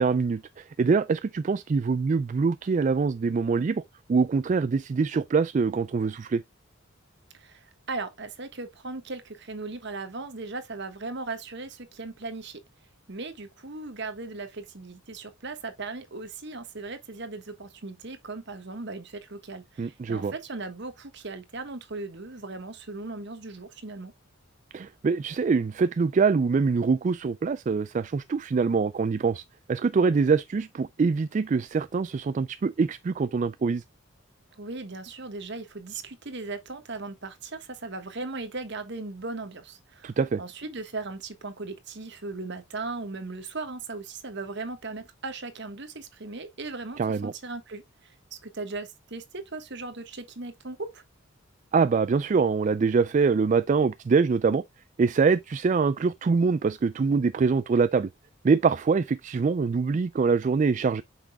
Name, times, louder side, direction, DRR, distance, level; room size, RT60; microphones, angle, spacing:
voice 1, 0.0-3.8 4.1-6.4 19.8-20.3 24.7-33.8 40.0-40.4 47.0-47.3 51.7-54.6 55.0-58.1 58.4-61.0, right 5 dB, 35° right, 0.3 m, -24 dB
voice 2, 7.3-12.6 13.1-24.1 34.6-51.0, right 3 dB, 55° right, 1.3 m, -38 dB
8.0 x 6.1 x 2.2 m
head